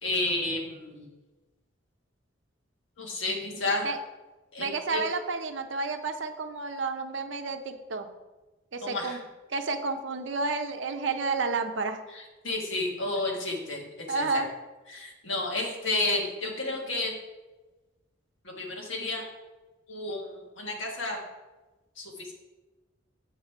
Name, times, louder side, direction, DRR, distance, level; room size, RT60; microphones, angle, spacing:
voice 1, 0.0-1.1 3.0-3.9 4.5-5.0 8.8-9.2 12.1-14.4 14.9-17.1 18.4-19.2 19.9-21.2 22.0-22.3, left 2 dB, 70° left, 0 dB, 1.6 m, -31 dB
voice 2, 4.6-8.1 8.7-9.2 9.5-12.0 14.1-14.5, right 4 dB, 65° right, 7 dB, 0.6 m, -31 dB
7.3 x 5.1 x 4.6 m, 1.2 s
head